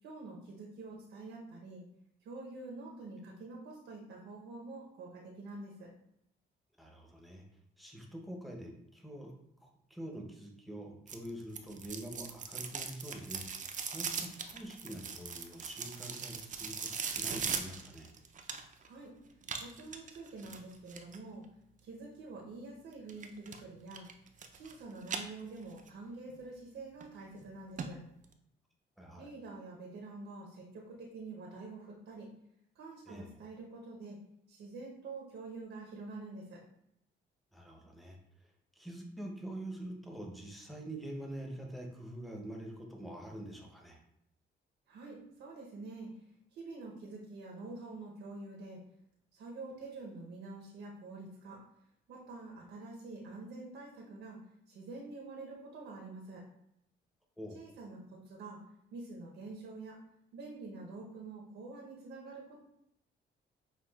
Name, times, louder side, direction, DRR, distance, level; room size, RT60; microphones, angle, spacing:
voice 1, 0.0-1.8 2.2-5.9 18.8-19.1 19.6-21.4 21.8-24.1 24.5-28.0 29.2-32.3 32.7-34.2 34.5-36.6 44.9-46.2 46.5-48.8 49.3-51.6 52.1-54.4 54.7-56.4 57.5-58.6 58.9-60.0 60.3-62.6, right 3 dB, 80° right, -1 dB, 0.9 m, -47 dB
voice 2, 6.8-7.4 7.8-9.3 9.6-18.1 29.0-29.3 33.1-33.3 37.5-44.0 57.4-57.6, right 1 dB, ahead, 1 dB, 0.8 m, -45 dB
sound 1, 11.1-18.9 19.4-21.2 23.1-23.6 23.9-24.7 25.0-25.9 26.3-26.4 27.0-27.1 27.4-27.5 27.8-27.9 28.2-28.3, right 6 dB, 40° right, 0.5 m, -40 dB
5.8 x 2.3 x 2.3 m, 0.78 s
cardioid pair, 90°, 20 cm